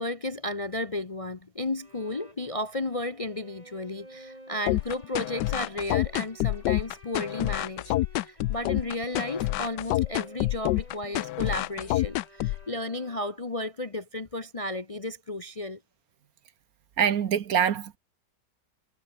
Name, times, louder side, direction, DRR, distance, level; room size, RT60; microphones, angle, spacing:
voice 1, 0.0-15.8, left 1 dB, 25° left, 0.8 m, -33 dB
Bowed string instrument, 1.8-13.6, right 1 dB, 20° right, 6.8 m, -53 dB
sound 1, 4.7-12.6, left 16 dB, 80° left, 1.2 m, -27 dB
voice 2, 17.0-18.0, right 8 dB, 60° right, 1.4 m, -24 dB
omnidirectional pair, 1.8 m